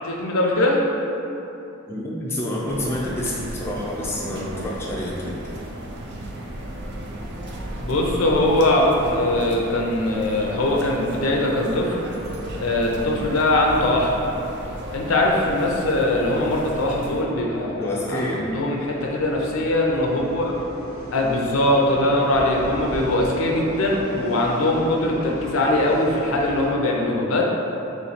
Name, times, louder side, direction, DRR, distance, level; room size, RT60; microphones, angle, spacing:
voice 1, 0.0-0.8 7.8-12.0 12.6-14.1 14.9-20.6 21.1-27.4, left 1 dB, 65° left, -1 dB, 0.5 m, -21 dB
voice 2, 1.9-5.4 17.6-18.5, left 1 dB, 10° left, -5 dB, 0.4 m, -28 dB
sound 1, 2.7-17.2, right 1 dB, 50° right, 0.4 m, -34 dB
sound 2, 14.8-26.7, equal, 70° right, 1.4 m, -38 dB
3.1 x 3.0 x 4.1 m, 2.9 s
head